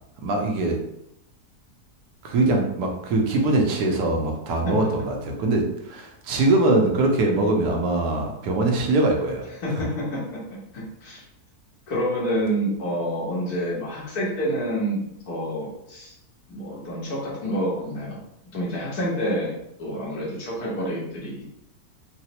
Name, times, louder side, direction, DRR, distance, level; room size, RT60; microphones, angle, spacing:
voice 1, 0.2-0.8 2.2-9.4, right 2 dB, 90° right, 1 dB, 1.2 m, -22 dB
voice 2, 9.6-10.4 10.7-11.2 11.9-16.1 16.5-18.2 18.5-19.5 19.8-21.4, equal, 70° left, -5 dB, 1.5 m, -28 dB
4.0 x 2.0 x 2.8 m, 0.82 s
omnidirectional pair, 1.6 m